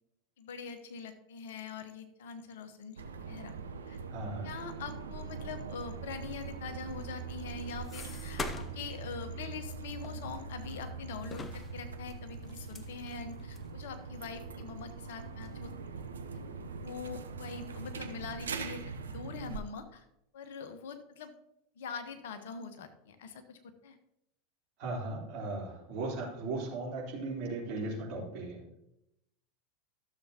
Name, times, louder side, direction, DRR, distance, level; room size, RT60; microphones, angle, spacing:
voice 1, 0.4-3.0 3.3-3.5 3.9-4.0 4.4-15.7 16.7-20.0 20.3-21.3 21.8-24.0, left 5 dB, 65° left, 8 dB, 1.1 m, -43 dB
sound 1, 3.0-19.6, right 5 dB, 80° right, 0.6 m, -42 dB
voice 2, 4.1-4.5 24.8-28.8, right 2 dB, 50° right, -4 dB, 3.7 m, -37 dB
sound 2, 7.0-8.9 9.2-9.4 10.0-10.9 11.2-13.7 14.3-14.4 14.6-14.7 15.4-15.6 16.1-16.8 17.1-17.8, left 4 dB, 25° left, 0.7 m, -45 dB
13.0 x 7.0 x 2.9 m, 0.83 s
figure-of-eight pair, 85°, 0 cm